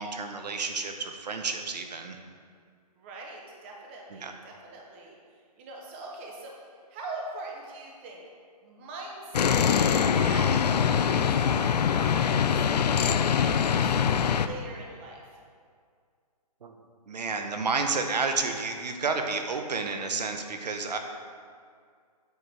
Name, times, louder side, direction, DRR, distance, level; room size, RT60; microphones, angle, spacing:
voice 1, 0.0-2.2 4.1-4.3 16.6-16.7 17.1-21.0, right 4 dB, 80° right, 5 dB, 1.0 m, -30 dB
voice 2, 3.0-6.6 6.9-8.2 8.6-13.9 14.3-15.2, right 2 dB, 15° right, -1 dB, 0.7 m, -43 dB
sound 1, 9.3-14.5, left 7 dB, 75° left, 0.5 m, -23 dB
8.1 x 4.7 x 4.8 m, 2.1 s
hypercardioid pair, 165°, 21 cm